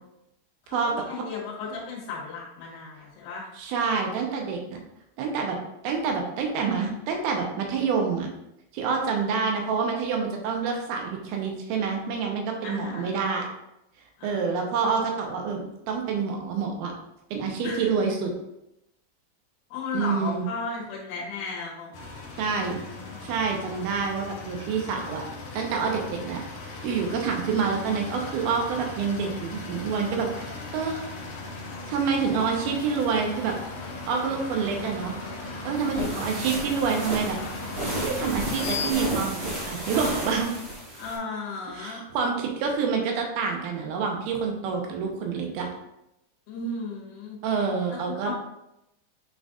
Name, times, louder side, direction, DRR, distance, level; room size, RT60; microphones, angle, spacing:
voice 1, 0.6-3.5 12.6-13.2 14.2-14.7 17.6-17.9 19.7-21.9 22.2-23.4 36.0-36.1 41.0-42.0 46.5-47.4 47.9-48.3, left 4 dB, 85° left, -5 dB, 3.5 m, -35 dB
voice 2, 3.6-4.8 5.2-5.6 5.8-8.3 8.7-13.5 14.2-16.9 17.3-18.3 19.9-20.5 22.4-22.8 23.2-25.2 25.5-26.4 26.8-31.0 31.9-33.6 34.1-35.1 35.7-37.4 37.8-40.5 41.7-45.7 47.4-48.3, right 5 dB, 75° right, 1 dB, 2.5 m, -27 dB
sound 1, 21.9-38.9, left 3 dB, 65° left, 2.0 m, -37 dB
sound 2, 35.7-41.2, right 1 dB, 25° right, 1.3 m, -33 dB
9.5 x 3.9 x 2.5 m, 0.84 s
omnidirectional pair, 4.8 m